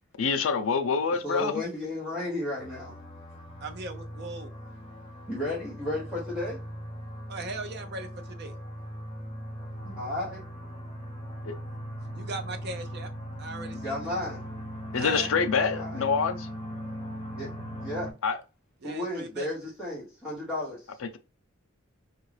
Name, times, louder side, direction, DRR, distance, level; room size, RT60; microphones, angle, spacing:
voice 1, 0.2-1.6 11.4-11.5 14.9-16.5 18.2-18.4, left 5 dB, 80° left, 0.5 m, -26 dB
voice 2, 1.2-2.9 5.3-6.6 9.8-10.4 13.7-14.4 15.7-16.0 17.3-17.5 17.8-18.1 18.8-21.0, left 1 dB, 5° right, 0.9 m, -33 dB
sound 1, 2.6-18.1, equal, 25° left, 1.0 m, -39 dB
voice 3, 3.6-4.5 7.3-8.5 12.1-13.1 13.4-13.9 14.9-15.3 18.8-19.5, right 3 dB, 55° right, 0.5 m, -38 dB
4.4 x 2.4 x 3.2 m
head